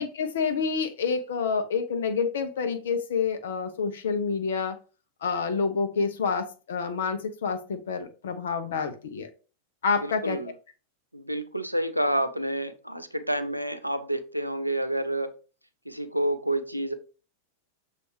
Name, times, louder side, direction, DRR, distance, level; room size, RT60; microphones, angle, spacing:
voice 1, 0.0-4.8 5.2-9.3 9.8-10.4, left 5 dB, 60° left, 0.6 m, -28 dB
voice 2, 10.0-10.5 11.1-15.3 15.9-16.9, right 1 dB, 90° right, 0.4 m, -29 dB
6.7 x 2.4 x 3.2 m
figure-of-eight pair, 90°, 0 cm